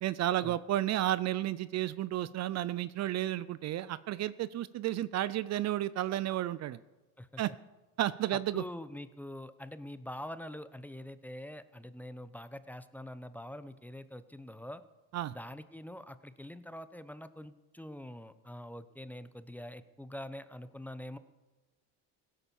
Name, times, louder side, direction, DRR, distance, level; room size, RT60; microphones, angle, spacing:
voice 1, 0.0-6.8 7.4-7.5 8.0-8.6 15.1-15.3, right 13 dB, 45° right, 17 dB, 0.5 m, -32 dB
voice 2, 8.3-14.8 15.3-21.2, left 1 dB, 5° left, 13 dB, 0.8 m, -45 dB
16.5 x 10.0 x 7.1 m, 1.2 s
cardioid pair, 110°, 37 cm